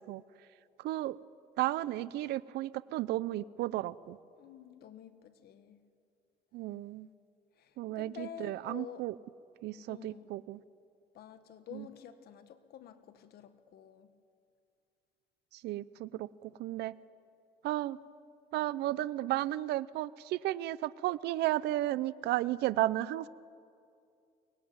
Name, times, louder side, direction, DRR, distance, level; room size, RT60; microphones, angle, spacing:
voice 1, 0.8-1.2 1.6-4.2 6.5-7.1 7.8-9.1 9.6-10.6 11.7-11.9 15.5-17.0 17.6-18.0 18.5-23.3, right 15 dB, 80° right, 18 dB, 0.6 m, -33 dB
voice 2, 4.4-5.8 7.6-9.1 9.9-10.3 11.1-14.1 23.0-23.3, left 10 dB, 70° left, 10 dB, 1.6 m, -49 dB
23.5 x 19.5 x 9.5 m, 2.4 s
cardioid pair, 110°, 17 cm